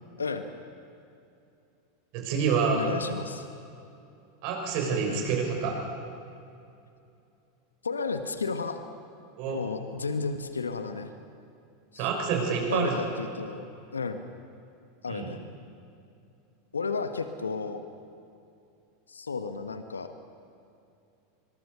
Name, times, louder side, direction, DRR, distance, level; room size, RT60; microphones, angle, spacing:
voice 1, 0.2-0.5 2.7-3.5 5.0-5.3 7.8-8.8 9.5-11.1 11.9-12.1 12.7-13.6 13.9-14.3 15.0-15.4 16.7-17.8 19.1-20.1, left 4 dB, 85° left, 8 dB, 1.3 m, -33 dB
voice 2, 2.1-3.0 4.4-5.8 9.4-9.6 12.0-13.0 15.1-15.3, right 5 dB, 55° right, 2 dB, 6.2 m, -27 dB
25.0 x 22.0 x 6.9 m, 2.6 s
figure-of-eight pair, 85°, 0 cm